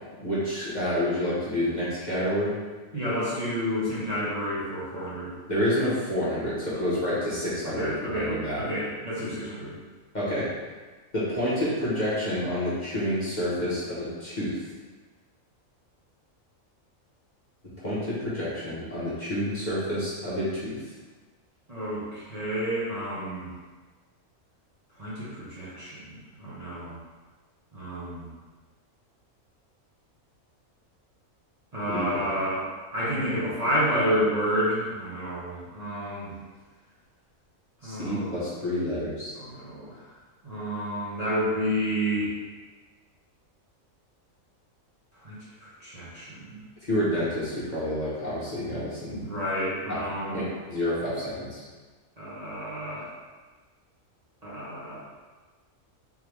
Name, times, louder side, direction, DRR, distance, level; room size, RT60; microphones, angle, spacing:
voice 1, 0.2-2.5 5.5-8.6 10.1-10.5 11.1-14.6 17.8-20.8 31.9-32.3 37.8-39.3 46.8-49.2 49.9-50.0 50.3-51.6, equal, 40° left, -10 dB, 1.0 m, -28 dB
voice 2, 2.9-5.4 6.7-6.9 7.6-9.8 21.7-23.5 25.0-26.9 27.7-28.3 31.7-32.6 32.9-36.3 37.8-38.4 39.3-40.0 40.4-42.3 45.2-45.3 45.6-46.6 49.1-50.4 52.2-53.1 54.4-55.1, equal, 30° right, -10 dB, 1.0 m, -30 dB
3.7 x 3.3 x 3.2 m, 1.3 s
omnidirectional pair, 1.4 m